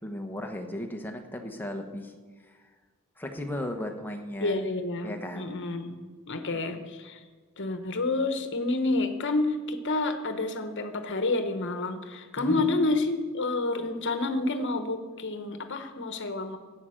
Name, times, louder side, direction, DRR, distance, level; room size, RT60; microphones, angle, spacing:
voice 1, 0.0-2.1 2.4-2.6 3.2-4.7 5.0-5.5 6.5-6.8 12.4-12.6, left 1 dB, 10° left, 4 dB, 1.1 m, -36 dB
voice 2, 4.4-6.0 6.3-7.2 7.6-16.6, left 2 dB, 60° left, 8 dB, 1.1 m, -29 dB
13.0 x 8.9 x 6.5 m, 1.4 s
head